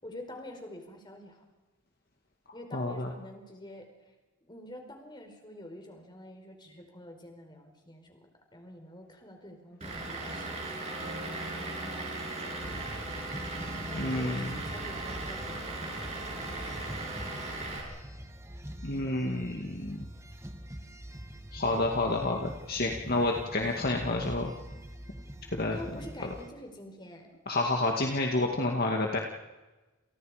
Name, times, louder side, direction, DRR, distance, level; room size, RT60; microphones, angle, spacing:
voice 1, 0.0-1.4 2.5-4.1 4.4-8.2 8.5-12.9 13.9-17.0 25.6-27.3, left 1 dB, 20° left, 3 dB, 4.9 m, -47 dB
voice 2, 2.7-3.1 13.9-14.5 18.8-20.1 21.5-24.5 25.5-25.8 27.5-29.2, left 2 dB, 45° left, 1 dB, 2.2 m, -29 dB
Vehicle / Engine, 9.8-17.8, right 2 dB, 30° right, 7.1 m, -37 dB
sound 1, 12.6-26.5, equal, 15° right, 1.5 m, -44 dB
29.5 x 29.5 x 5.2 m, 1.2 s
head